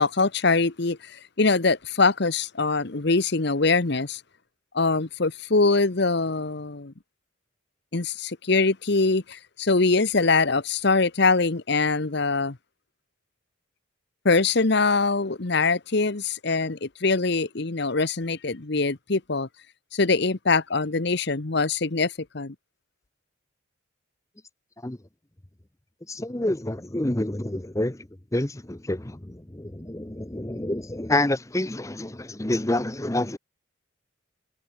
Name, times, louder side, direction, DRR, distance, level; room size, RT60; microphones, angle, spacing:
voice 1, 0.0-4.2 4.7-6.9 7.9-12.6 14.2-19.5 19.9-22.5, left 3 dB, 55° left, 1.1 m, -23 dB
voice 2, 26.1-28.0 28.3-29.2 29.5-33.4, left 1 dB, 15° left, 0.8 m, -27 dB
head